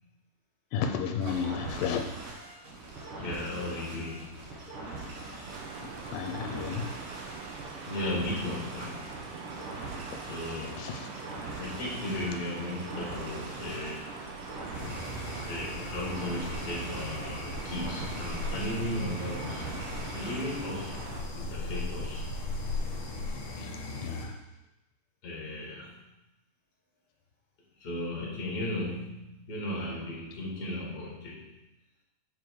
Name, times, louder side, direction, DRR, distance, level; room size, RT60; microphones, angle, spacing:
voice 1, 0.7-2.4 5.7-7.0 10.7-11.1 23.3-24.5, left 6 dB, 80° left, 4 dB, 2.4 m, -34 dB
sound 1, 1.2-20.6, right 2 dB, 55° right, 1.4 m, -42 dB
voice 2, 3.2-4.6 7.8-9.3 10.3-10.9 11.6-14.1 15.4-19.8 20.1-21.0 21.4-22.2 25.2-26.0 27.8-31.6, left 1 dB, 35° left, -4 dB, 2.2 m, -36 dB
sound 2, 5.5-21.2, right 4 dB, 85° right, 1.2 m, -43 dB
sound 3, 14.7-24.3, left 2 dB, 60° left, 1.3 m, -37 dB
7.6 x 4.8 x 4.7 m, 0.93 s
omnidirectional pair, 3.9 m